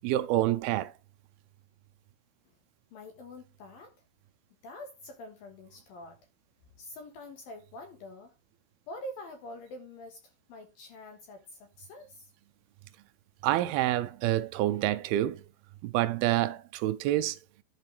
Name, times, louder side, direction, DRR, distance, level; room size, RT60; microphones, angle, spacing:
voice 1, 0.0-0.9 13.4-15.4 15.8-17.4, right 14 dB, 80° right, 2.3 m, -27 dB
voice 2, 2.9-4.0 4.6-6.2 6.8-8.3 8.9-10.2 10.5-12.3, left 1 dB, 65° left, 2.8 m, -45 dB
11.5 x 7.3 x 3.3 m
omnidirectional pair, 5.1 m